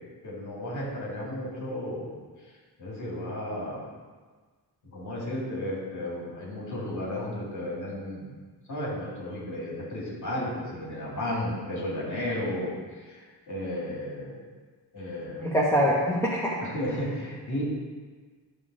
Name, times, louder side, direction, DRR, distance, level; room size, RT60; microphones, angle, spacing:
voice 1, 0.0-2.1 2.8-3.8 4.8-8.3 8.7-14.4 14.9-15.6 16.6-17.6, left 1 dB, 45° left, -4 dB, 2.6 m, -33 dB
voice 2, 15.4-16.6, equal, 5° left, -7 dB, 1.0 m, -24 dB
11.0 x 3.8 x 6.2 m, 1.4 s
wide cardioid pair, 180°, 40 cm